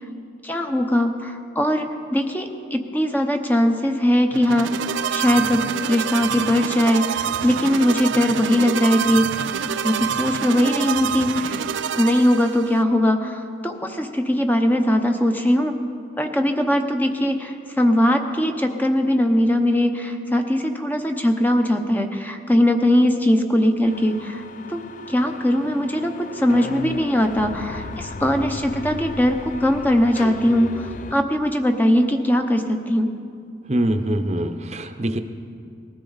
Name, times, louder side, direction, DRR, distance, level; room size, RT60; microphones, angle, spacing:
voice 1, 0.4-4.7 5.1-9.4 9.8-11.6 11.9-15.7 16.2-24.4 24.7-24.8 25.1-33.1, equal, 10° left, 5 dB, 0.8 m, -20 dB
sound 1, 4.3-12.8, right 8 dB, 75° right, 0.4 m, -27 dB
sound 2, 23.9-31.1, left 3 dB, 40° left, 0.4 m, -36 dB
voice 2, 33.7-35.2, right 1 dB, 35° right, 7 dB, 0.7 m, -23 dB
20.0 x 13.5 x 4.0 m, 2.4 s
head